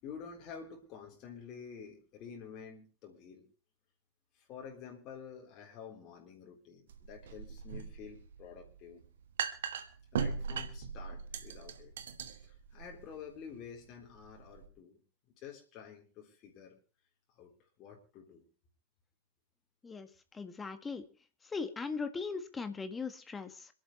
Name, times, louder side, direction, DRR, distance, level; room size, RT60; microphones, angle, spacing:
voice 1, 0.0-3.5 4.3-9.0 10.1-11.9 12.3-15.0 15.4-16.8 17.3-17.5 17.8-18.4, left 7 dB, 35° left, 0 dB, 3.9 m, -49 dB
sound 1, 6.9-14.7, right 6 dB, 60° right, 1.3 m, -40 dB
voice 2, 20.3-21.0 21.5-23.7, left 4 dB, 15° left, 9 dB, 1.6 m, -39 dB
26.5 x 11.5 x 3.2 m, 0.34 s
figure-of-eight pair, 90°, 0 cm